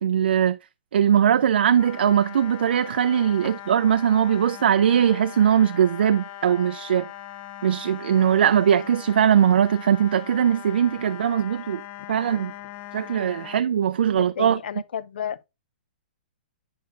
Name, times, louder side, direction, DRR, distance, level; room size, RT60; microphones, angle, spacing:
voice 1, 0.0-0.6 0.9-7.1 7.6-11.8 12.1-12.5 12.9-14.6, right 9 dB, 80° right, 0.4 m, -20 dB
sound 1, 1.7-13.6, left 11 dB, 30° left, 0.5 m, -40 dB
voice 2, 14.1-15.4, left 8 dB, 75° left, 0.6 m, -32 dB
9.4 x 5.2 x 2.5 m
hypercardioid pair, 150°, 6 cm